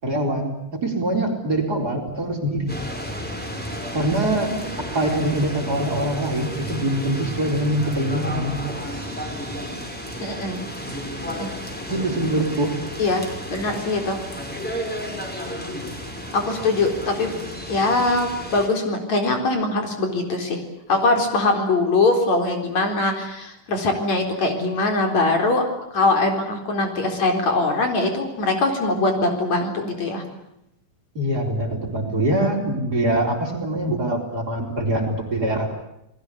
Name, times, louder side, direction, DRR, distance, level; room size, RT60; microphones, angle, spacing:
voice 1, 0.0-2.8 3.9-4.5 4.8-8.6 11.9-12.8 31.1-35.7, right 1 dB, 30° right, 2 dB, 4.6 m, -24 dB
sound 1, 2.7-18.7, equal, 5° left, 5.2 m, -32 dB
voice 2, 10.2-10.6 11.3-11.5 13.0-14.2 16.3-17.3 17.7-20.6 20.9-25.6 25.9-30.2, left 2 dB, 60° left, 4 dB, 5.3 m, -22 dB
30.0 x 20.0 x 8.5 m, 0.82 s
omnidirectional pair, 3.6 m